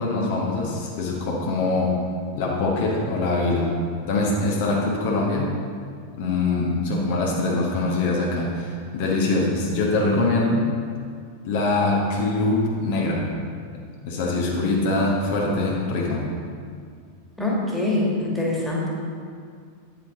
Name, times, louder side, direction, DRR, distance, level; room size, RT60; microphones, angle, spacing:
voice 1, 0.0-2.0 2.3-3.7 4.1-5.5 6.1-10.7 11.4-13.3 13.7-16.3, left 2 dB, 50° left, -2 dB, 1.2 m, -23 dB
voice 2, 17.4-18.9, left 2 dB, ahead, -5 dB, 1.9 m, -24 dB
8.9 x 7.3 x 3.7 m, 2.1 s
figure-of-eight pair, 90°, 0 cm